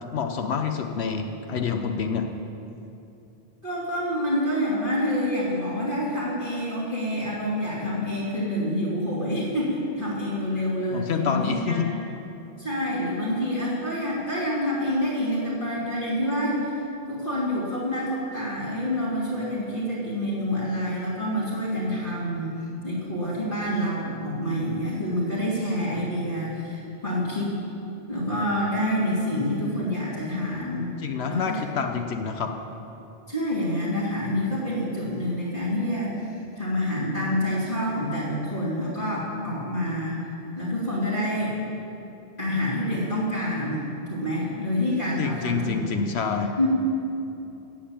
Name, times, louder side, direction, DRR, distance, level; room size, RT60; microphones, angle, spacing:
voice 1, 0.1-2.3 10.9-11.9 31.0-32.5 45.2-46.6, left 6 dB, 80° left, 5 dB, 1.0 m, -27 dB
voice 2, 3.6-11.8 12.6-16.7 17.1-22.6 22.8-27.6 28.1-31.6 33.3-36.3 36.6-40.2 40.6-41.6 42.4-43.8 44.1-46.0 46.4-46.7, equal, 50° left, -8 dB, 3.2 m, -27 dB
14.5 x 7.4 x 8.7 m, 2.8 s
omnidirectional pair, 1.1 m